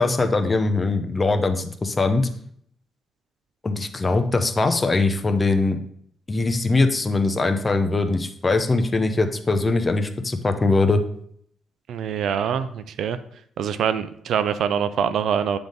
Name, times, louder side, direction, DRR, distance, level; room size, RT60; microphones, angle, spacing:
voice 1, 0.0-2.3 3.6-5.8 6.3-11.0, left 3 dB, 25° left, 8 dB, 0.7 m, -21 dB
voice 2, 11.9-13.2 13.6-15.6, right 8 dB, 75° right, 12 dB, 0.4 m, -24 dB
8.9 x 3.5 x 3.9 m, 0.65 s
cardioid pair, 100°, 0 cm